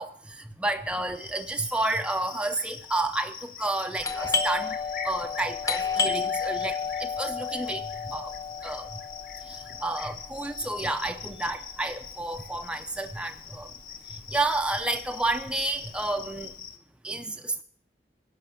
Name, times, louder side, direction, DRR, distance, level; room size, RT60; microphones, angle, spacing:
voice 1, 0.0-4.7 5.0-7.8 8.1-8.3 8.6-8.9 9.5-13.7 14.3-16.5 17.0-17.6, right 2 dB, 5° right, 6 dB, 0.4 m, -30 dB
Cricket, 1.2-16.8, left 7 dB, 50° left, 0.9 m, -43 dB
Doorbell, 4.0-13.4 13.6-13.7 14.4-14.7 15.0-16.4, left 5 dB, 20° left, 0.9 m, -32 dB
10.5 x 6.6 x 8.4 m, 0.64 s
head